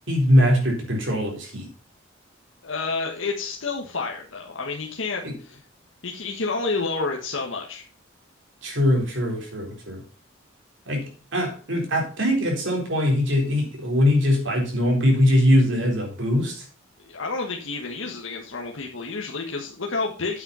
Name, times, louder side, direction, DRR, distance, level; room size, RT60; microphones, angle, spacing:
voice 1, 0.1-1.7 5.2-5.3 8.6-10.0 10.9-16.7, left 1 dB, 65° right, 0 dB, 3.9 m, -22 dB
voice 2, 2.6-5.6 6.0-7.8 17.1-20.4, left 3 dB, 70° left, 0 dB, 1.3 m, -29 dB
8.7 x 7.3 x 5.6 m, 0.37 s
head